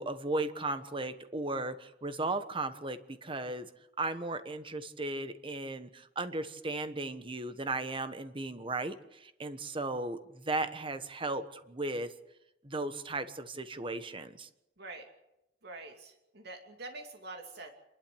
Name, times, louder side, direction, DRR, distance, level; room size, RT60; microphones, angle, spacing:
voice 1, 0.0-3.7 4.0-12.1 12.6-14.5, right 2 dB, 30° right, 10 dB, 1.2 m, -36 dB
voice 2, 15.6-17.7, right 2 dB, 65° right, 3 dB, 2.7 m, -45 dB
27.5 x 12.0 x 8.6 m, 0.89 s
head